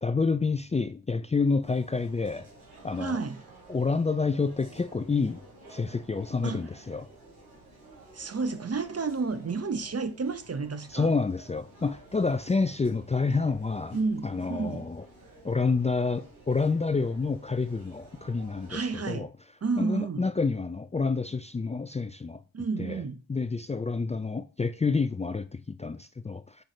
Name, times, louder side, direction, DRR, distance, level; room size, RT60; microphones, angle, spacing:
voice 1, 0.0-2.5 2.8-3.2 3.7-5.4 5.7-7.1 10.9-14.0 14.2-15.0 15.4-19.3 19.8-22.4 22.8-23.0 23.3-26.6, left 4 dB, 20° left, 0.5 m, -28 dB
sound 1, 1.6-19.2, right 2 dB, 80° right, 3.5 m, -52 dB
voice 2, 3.0-3.4 6.4-6.6 8.1-11.1 13.9-14.9 18.7-19.3 19.6-20.2 22.5-23.2, right 4 dB, 40° right, 1.0 m, -31 dB
8.0 x 6.2 x 3.2 m
supercardioid pair, 40°, 38 cm